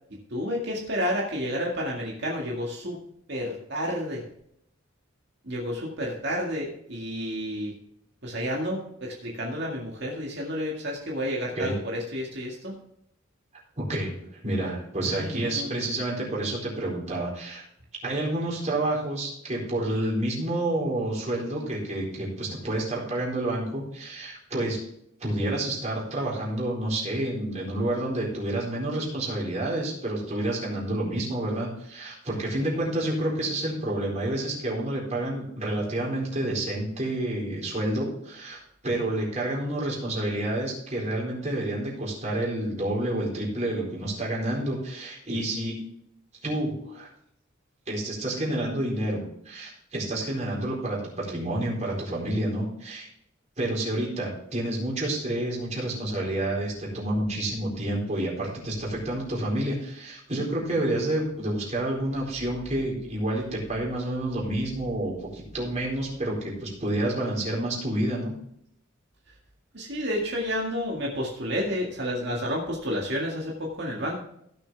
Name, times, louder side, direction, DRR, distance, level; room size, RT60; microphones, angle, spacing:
voice 1, 0.3-3.0 3.3-4.2 5.4-7.7 8.2-12.7 15.0-15.8 69.7-74.1, equal, 60° right, -2 dB, 2.1 m, -30 dB
voice 2, 13.8-17.6 18.0-24.8 25.2-45.7 46.4-47.1 47.9-53.1 53.6-68.3, right 1 dB, 35° right, -3 dB, 4.2 m, -29 dB
16.0 x 6.7 x 3.5 m, 0.73 s
head